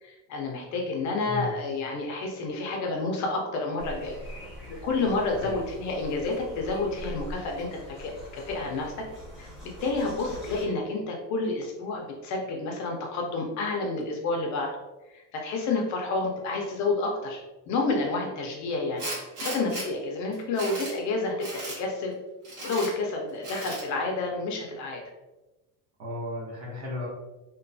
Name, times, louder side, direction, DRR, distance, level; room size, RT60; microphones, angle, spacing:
voice 1, 0.0-4.2 4.8-7.7 8.0-9.0 9.4-9.5 9.8-14.7 15.1-17.4 17.7-19.0 19.4-22.1 22.6-25.0, left 3 dB, 45° left, 1 dB, 0.4 m, -29 dB
voice 2, 1.2-1.6 5.3-5.6 26.0-27.1, left 2 dB, 40° right, -3 dB, 0.9 m, -35 dB
sound 1, 3.8-10.6, equal, ahead, 0.8 m, -43 dB
Tools, 19.0-19.9 20.3-21.0 21.4-21.8 22.4-22.9 23.4-23.9, right 1 dB, 60° right, 1.4 m, -36 dB
3.0 x 2.2 x 2.5 m, 1.1 s
cardioid pair, 170°, 41 cm